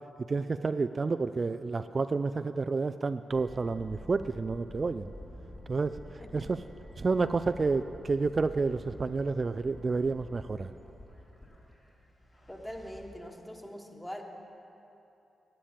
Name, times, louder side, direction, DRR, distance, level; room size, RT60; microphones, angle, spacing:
voice 1, 0.3-5.1 5.7-6.0 6.3-6.6 7.0-10.7, right 4 dB, 45° right, 10 dB, 0.3 m, -30 dB
sound 1, 3.3-13.0, left 1 dB, 40° left, 2.8 m, -49 dB
voice 2, 12.5-14.2, equal, 10° left, 2 dB, 1.6 m, -43 dB
10.5 x 8.6 x 7.1 m, 2.9 s
supercardioid pair, 50°, 0 cm